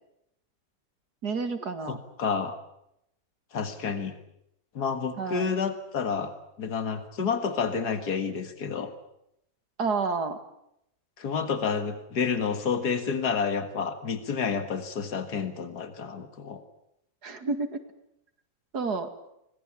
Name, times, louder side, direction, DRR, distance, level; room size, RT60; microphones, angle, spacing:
voice 1, 1.2-2.0 5.2-5.5 9.8-10.4 17.2-17.8 18.7-19.1, right 4 dB, 85° right, 8 dB, 2.8 m, -30 dB
voice 2, 1.9-2.6 3.5-4.2 4.7-6.3 6.6-8.9 11.2-16.6, left 6 dB, 85° left, 8 dB, 2.3 m, -29 dB
25.0 x 20.0 x 8.6 m, 0.80 s
omnidirectional pair, 1.7 m